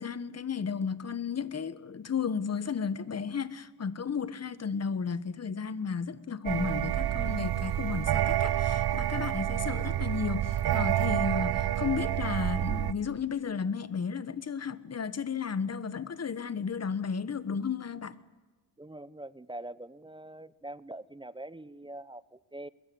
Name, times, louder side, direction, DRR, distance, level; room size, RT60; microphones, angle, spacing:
voice 1, 0.0-18.1, left 6 dB, 35° left, 1.4 m, -33 dB
sound 1, 6.5-12.9, right 12 dB, 60° right, 0.8 m, -28 dB
voice 2, 18.8-22.7, right 1 dB, 10° right, 0.7 m, -44 dB
22.5 x 21.5 x 9.5 m
cardioid pair, 115°, 44 cm